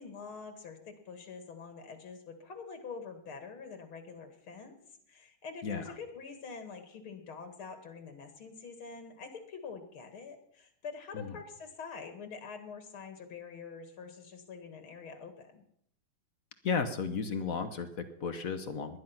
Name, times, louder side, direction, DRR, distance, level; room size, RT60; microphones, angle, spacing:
voice 1, 0.0-4.8 5.1-15.6, left 5 dB, 85° left, 7 dB, 2.8 m, -46 dB
voice 2, 5.6-5.9 11.1-11.3 16.6-19.0, left 5 dB, 50° left, 10 dB, 1.4 m, -34 dB
19.5 x 11.5 x 5.9 m, 0.68 s
omnidirectional pair, 2.3 m